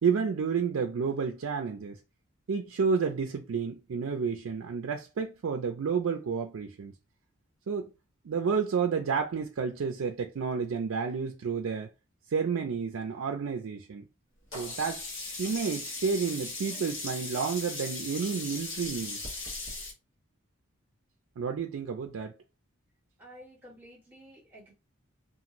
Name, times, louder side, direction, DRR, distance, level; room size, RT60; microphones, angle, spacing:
voice 1, 0.0-2.0 2.5-6.9 7.7-7.9 8.2-11.9 12.3-14.1 14.5-15.1 15.4-19.2 21.4-22.3, right 5 dB, 75° right, 0.4 m, -30 dB
Sink (filling or washing), 14.5-19.9, left 3 dB, 65° left, 1.1 m, -38 dB
voice 2, 23.2-24.7, equal, 10° right, 1.3 m, -51 dB
2.5 x 2.5 x 2.9 m
head